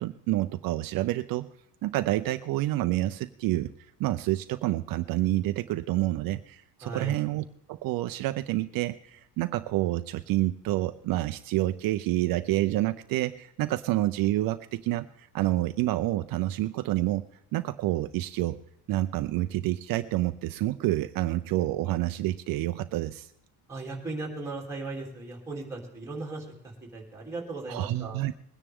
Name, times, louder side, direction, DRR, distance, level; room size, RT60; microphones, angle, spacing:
voice 1, 0.0-1.5 1.8-3.7 4.0-17.3 17.5-18.6 18.9-23.3 27.7-28.3, right 16 dB, 60° right, 10 dB, 0.6 m, -28 dB
voice 2, 6.8-7.2 23.7-28.2, right 2 dB, 5° right, -3 dB, 2.9 m, -37 dB
21.0 x 10.0 x 3.6 m, 0.78 s
cardioid pair, 165°, 39 cm